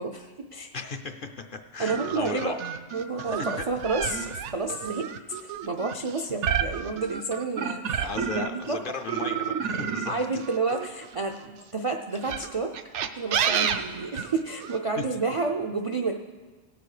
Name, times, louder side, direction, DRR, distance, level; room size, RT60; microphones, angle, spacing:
voice 1, 0.0-0.7 1.8-2.5 2.9-5.1 5.4-8.8 10.1-12.7 13.1-16.1, right 3 dB, 50° right, 3 dB, 0.4 m, -30 dB
voice 2, 0.7-2.7 3.2-3.7 8.0-10.2 15.0-15.1, left 4 dB, 55° left, 6 dB, 0.7 m, -36 dB
sound 1, 1.9-8.7 9.1-11.5 12.2-14.8, right 8 dB, 75° right, 0.9 m, -30 dB
17.5 x 6.8 x 4.9 m, 1.4 s
omnidirectional pair, 1.3 m